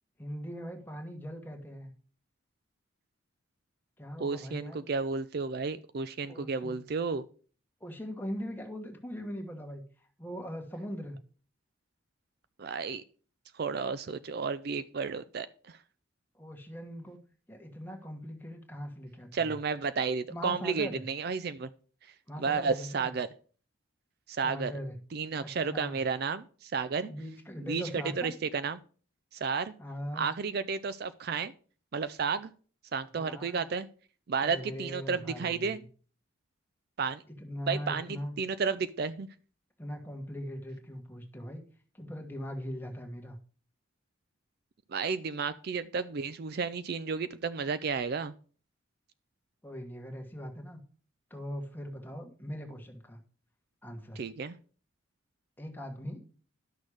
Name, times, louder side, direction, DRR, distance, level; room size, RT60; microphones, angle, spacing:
voice 1, 0.2-1.9 4.0-4.8 6.3-6.8 7.8-9.8 10.2-11.2 16.3-17.2 17.5-19.6 20.3-21.0 22.3-23.1 24.4-24.9 25.4-26.0 27.1-28.3 29.8-30.3 33.1-33.6 34.4-35.8 37.4-38.3 39.8-41.6 41.9-43.4 49.6-50.8 51.3-53.2 53.8-54.2 55.6-56.3, equal, 10° left, 3 dB, 1.4 m, -40 dB
voice 2, 4.2-7.3 12.6-13.0 13.5-15.8 19.3-21.7 22.4-23.3 24.3-24.7 25.1-27.1 27.7-28.8 29.3-29.7 30.1-31.5 31.9-32.5 32.9-33.9 34.3-35.8 37.0-37.2 37.7-39.3 44.9-48.3 54.2-54.6, right 5 dB, 50° right, 14 dB, 0.4 m, -32 dB
11.5 x 6.3 x 4.9 m, 0.42 s
head